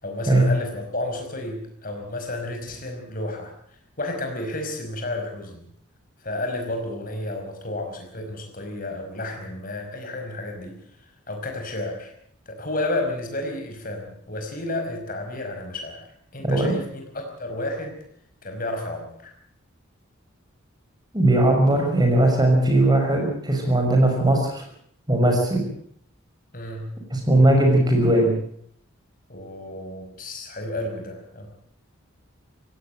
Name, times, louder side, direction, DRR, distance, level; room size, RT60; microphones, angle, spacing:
voice 1, 0.0-3.5 4.0-5.6 6.2-10.8 11.3-12.1 12.5-16.1 16.3-18.0 18.4-19.3 26.5-27.0 29.3-31.5, left 1 dB, 40° left, 4 dB, 5.3 m, -31 dB
voice 2, 16.4-16.8 21.1-24.6 25.1-25.6 27.1-28.3, right 1 dB, 20° right, 2 dB, 5.8 m, -19 dB
17.5 x 17.0 x 9.1 m, 0.65 s
head